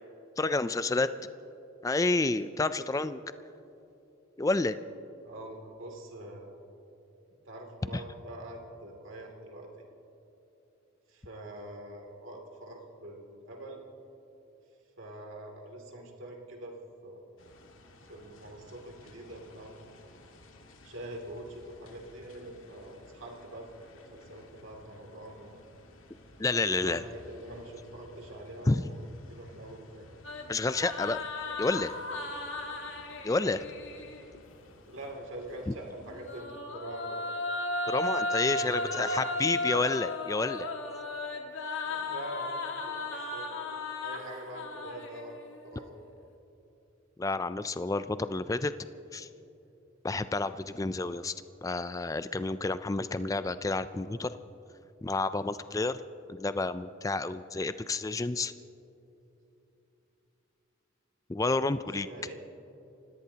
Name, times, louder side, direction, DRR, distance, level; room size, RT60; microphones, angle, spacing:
voice 1, 0.4-1.1 1.8-3.2 4.4-4.8 7.9-8.0 26.4-27.0 28.7-28.8 30.5-31.2 31.6-31.9 33.2-33.6 35.7-35.8 37.9-40.7 47.2-48.7 49.1-49.3 50.0-51.3 51.6-54.3 55.0-56.0 56.3-58.5 61.3-62.1, left 3 dB, 15° left, 13 dB, 0.3 m, -29 dB
voice 2, 5.2-6.6 7.5-9.7 11.1-13.8 15.0-16.8 17.0-17.3 18.1-19.7 20.8-25.6 26.5-29.0 29.3-30.1 33.4-33.5 34.6-37.2 38.5-39.2 41.8-45.4 45.6-46.0 62.0-62.4, right 1 dB, 75° right, 1 dB, 2.7 m, -44 dB
sound 1, 17.4-36.4, left 2 dB, 85° left, 1.7 m, -56 dB
sound 2, 30.2-34.2 36.0-45.6, left 2 dB, 70° left, 1.5 m, -35 dB
28.5 x 17.5 x 2.9 m, 3.0 s
head